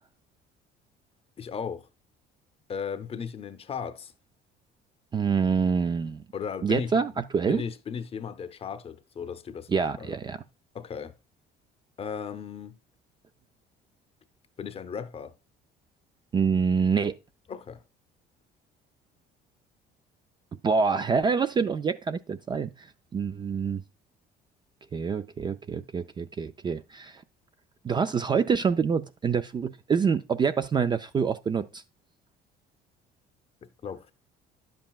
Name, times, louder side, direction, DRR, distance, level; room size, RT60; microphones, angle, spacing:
voice 1, 1.4-1.9 2.7-4.1 6.3-6.9 7.5-10.2 10.7-11.1 12.0-12.8 14.6-15.3 17.5-17.8 33.6-34.1, left 6 dB, 30° left, 0.7 m, -36 dB
voice 2, 5.1-6.2 6.6-7.6 9.7-10.4 16.3-17.2 20.6-23.8 24.9-27.2 27.8-31.8, right 5 dB, 25° right, 0.3 m, -26 dB
10.0 x 7.6 x 2.3 m
cardioid pair, 130°, 18 cm